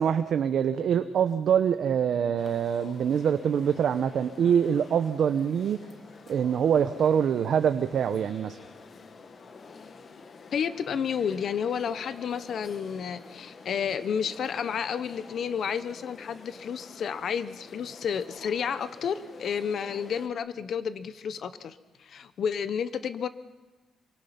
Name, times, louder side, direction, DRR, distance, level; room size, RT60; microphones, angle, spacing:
voice 1, 0.0-5.8 6.3-8.6, right 8 dB, 50° right, 9 dB, 0.8 m, -25 dB
sound 1, 2.4-20.3, left 4 dB, 30° left, 1.2 m, -49 dB
voice 2, 10.5-23.3, left 7 dB, 45° left, 13 dB, 0.8 m, -31 dB
27.0 x 24.0 x 5.9 m, 1.2 s
cardioid pair, 165°, 0 cm